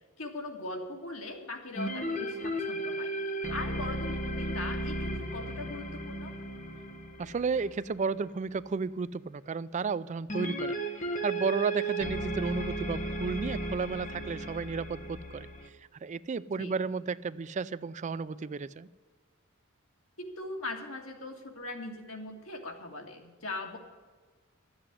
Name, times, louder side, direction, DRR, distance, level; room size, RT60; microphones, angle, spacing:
voice 1, 0.2-3.1 3.5-6.3 16.6-16.7 20.2-23.8, left 2 dB, 85° left, 2 dB, 2.3 m, -40 dB
sound 1, 1.8-8.3 10.3-15.7, right 1 dB, 40° left, 1.1 m, -35 dB
voice 2, 7.2-10.8 11.2-15.5 16.0-18.9, right 5 dB, 35° right, 16 dB, 0.4 m, -33 dB
12.5 x 7.9 x 9.6 m, 1.5 s
head